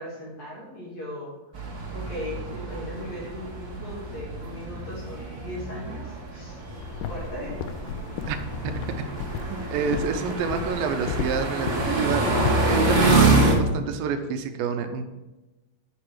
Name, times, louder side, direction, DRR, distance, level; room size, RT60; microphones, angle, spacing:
voice 1, 0.0-1.3 1.9-6.6 7.1-7.6, equal, 50° left, -7 dB, 3.5 m, -37 dB
sound 1, 1.5-13.5, right 2 dB, 70° right, 0.6 m, -26 dB
sound 2, 6.8-13.7, left 7 dB, 80° left, 2.0 m, -34 dB
voice 2, 9.5-15.0, right 6 dB, 85° right, 8 dB, 2.5 m, -28 dB
9.7 x 6.0 x 4.7 m, 1.1 s
omnidirectional pair, 4.1 m